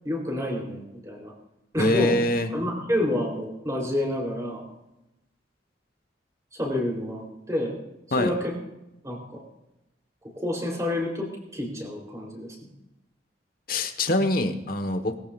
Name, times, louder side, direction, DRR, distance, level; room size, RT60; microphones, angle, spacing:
voice 1, 0.0-1.3 1.7-2.2 2.5-4.7 6.5-7.8 8.2-8.6 9.0-9.4 10.4-12.6, left 1 dB, 20° right, 0 dB, 3.5 m, -29 dB
voice 2, 1.8-2.5 8.1-8.3 13.7-15.2, left 1 dB, 50° left, 7 dB, 1.3 m, -24 dB
20.5 x 14.0 x 2.5 m, 0.93 s
head